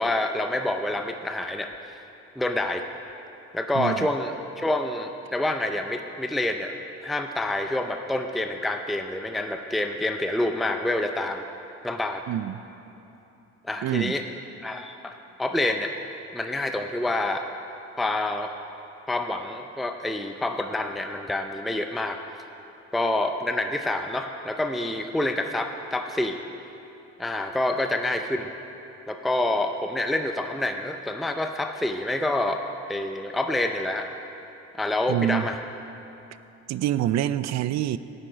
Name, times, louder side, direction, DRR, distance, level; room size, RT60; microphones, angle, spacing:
voice 1, 0.0-1.7 2.4-2.8 3.5-6.7 7.0-11.4 11.8-12.2 13.6-14.2 14.6-15.9 16.3-17.5 18.0-18.5 19.1-22.2 22.9-26.4 27.2-28.5 29.1-32.6 32.9-34.1 34.7-35.6, left 1 dB, ahead, 5 dB, 0.5 m, -27 dB
voice 2, 3.7-4.1 12.3-12.6 13.8-14.1 35.1-35.4 36.7-38.0, right 12 dB, 65° right, 15 dB, 0.5 m, -26 dB
11.5 x 9.0 x 5.0 m, 2.9 s
cardioid pair, 90°, 30 cm